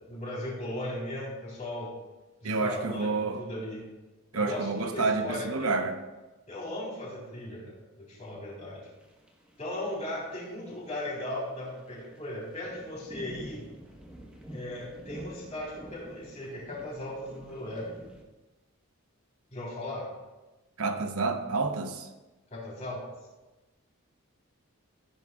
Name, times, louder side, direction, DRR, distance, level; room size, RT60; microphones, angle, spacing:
voice 1, 0.0-1.9 2.4-3.9 4.3-5.7 6.5-8.8 9.6-13.6 14.5-18.0 19.5-20.1 22.5-23.1, left 1 dB, 30° left, -5 dB, 3.7 m, -37 dB
voice 2, 2.4-3.4 4.3-6.0 20.8-22.1, right 3 dB, 80° right, 6 dB, 0.9 m, -29 dB
sound 1, 8.9-18.2, right 1 dB, 5° right, 1.1 m, -49 dB
15.5 x 10.0 x 2.4 m, 1.1 s
head